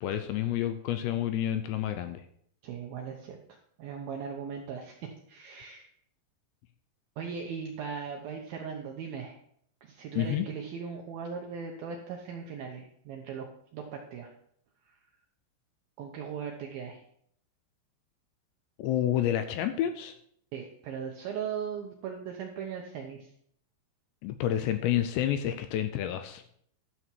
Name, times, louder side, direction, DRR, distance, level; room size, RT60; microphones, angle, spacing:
voice 1, 0.0-2.3 10.2-10.5 18.8-20.2 24.2-26.4, left 11 dB, 80° left, 9 dB, 2.6 m, -29 dB
voice 2, 2.6-5.9 7.2-9.4 9.8-14.3 16.0-17.0 20.5-23.3, right 6 dB, 80° right, 2 dB, 2.1 m, -39 dB
12.5 x 7.0 x 4.5 m, 0.66 s
omnidirectional pair, 5.4 m